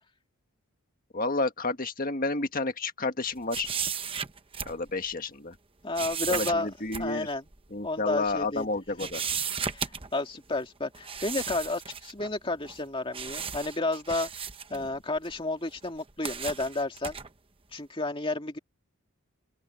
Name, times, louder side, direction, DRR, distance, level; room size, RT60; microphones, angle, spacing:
voice 1, 1.1-3.7 4.7-5.5 6.3-7.3 7.7-9.2 14.7-14.8, left 3 dB, 40° left, 1.7 m, -31 dB
sound 1, 3.5-5.1 6.0-7.1 7.5-7.6 8.3-8.7 9.0-10.2 10.9-12.3 12.7-12.9 13.1-15.4 15.8-17.3, right 7 dB, 25° right, 0.9 m, -35 dB
voice 2, 5.8-6.7 7.0-7.5 7.8-8.7 9.7-14.3 14.7-17.2 17.7-18.6, left 2 dB, 25° left, 2.3 m, -31 dB
open air
head